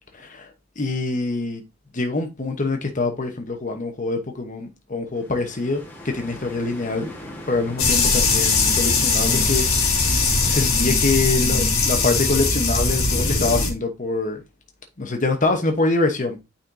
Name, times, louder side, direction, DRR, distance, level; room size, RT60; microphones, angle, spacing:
voice 1, 0.1-0.5 0.8-1.6 1.9-7.1 7.5-9.7 10.0-14.4 15.0-16.4, left 3 dB, 35° left, 1.0 m, -25 dB
sound 1, 5.1-10.8, left 1 dB, 10° left, 1.3 m, -39 dB
sound 2, 7.8-13.7, left 4 dB, 85° left, 1.6 m, -20 dB
9.0 x 4.2 x 2.7 m
head